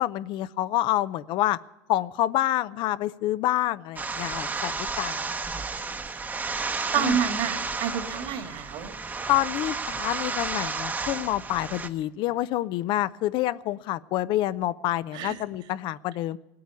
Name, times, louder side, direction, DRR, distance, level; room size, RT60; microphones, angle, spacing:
voice 1, 0.0-1.6 1.9-5.3 5.5-5.6 7.0-7.2 9.3-16.4, left 14 dB, 55° left, 16 dB, 0.5 m, -27 dB
sound 1, 4.0-11.9, right 4 dB, 15° right, 0.9 m, -32 dB
voice 2, 6.9-8.9 15.1-15.3, right 8 dB, 55° right, 9 dB, 1.9 m, -28 dB
17.5 x 8.5 x 9.5 m, 1.0 s
supercardioid pair, 130°, 10 cm